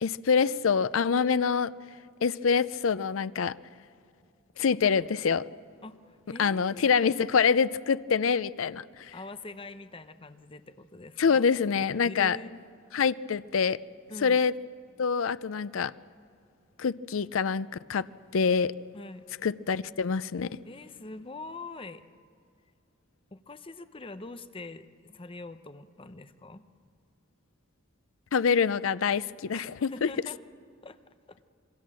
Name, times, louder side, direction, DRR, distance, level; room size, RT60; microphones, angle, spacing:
voice 1, 0.0-1.7 2.2-3.6 4.6-5.4 6.4-9.1 11.2-12.4 12.9-13.8 14.2-14.5 15.0-15.9 16.8-18.1 18.3-18.7 19.4-20.5 28.3-30.1, left 6 dB, 80° left, 16 dB, 0.5 m, -25 dB
voice 2, 5.8-6.9 9.1-11.5 12.0-12.6 14.1-14.4 18.9-19.4 20.6-22.0 23.3-26.6 29.5-30.4 30.8-31.4, left 2 dB, 25° left, 11 dB, 0.8 m, -44 dB
27.0 x 22.0 x 7.6 m, 2.3 s
head